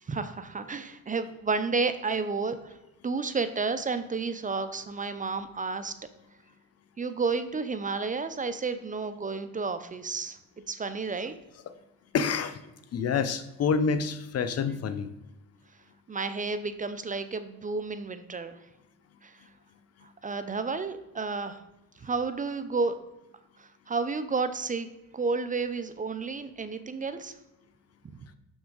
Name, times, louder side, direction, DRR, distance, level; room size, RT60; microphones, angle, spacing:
voice 1, 0.0-2.8 3.0-5.9 7.0-10.4 10.7-11.3 16.1-18.7 19.2-19.4 20.0-21.6 22.0-23.0 23.6-24.9 25.1-27.4, right 4 dB, 25° right, 11 dB, 0.6 m, -31 dB
voice 2, 12.1-12.6 12.9-15.1, left 5 dB, 55° left, 11 dB, 0.7 m, -27 dB
6.9 x 6.2 x 3.9 m, 0.96 s
cardioid pair, 90°, 30 cm